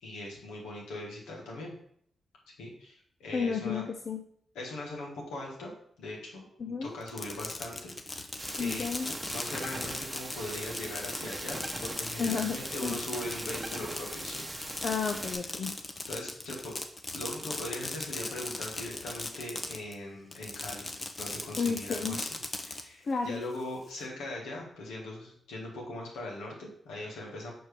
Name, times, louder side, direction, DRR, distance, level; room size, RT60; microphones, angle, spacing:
voice 1, 0.0-1.7 2.6-3.9 4.6-5.7 6.0-6.5 6.8-8.3 8.6-14.4 16.1-16.7 17.1-20.9 21.2-22.3 22.6-27.5, left 1 dB, 85° left, -2 dB, 1.7 m, -40 dB
voice 2, 3.3-4.2 6.6-7.0 8.6-9.1 12.2-13.0 14.8-15.7 21.6-22.2 23.0-23.4, left 5 dB, 60° left, 4 dB, 0.5 m, -32 dB
Fireworks, 7.0-19.9 20.3-22.8, left 2 dB, 35° left, 0.8 m, -38 dB
sound 1, 8.4-15.4, right 1 dB, 20° right, 1.1 m, -41 dB
5.1 x 4.3 x 4.9 m, 0.65 s
supercardioid pair, 45°, 0 cm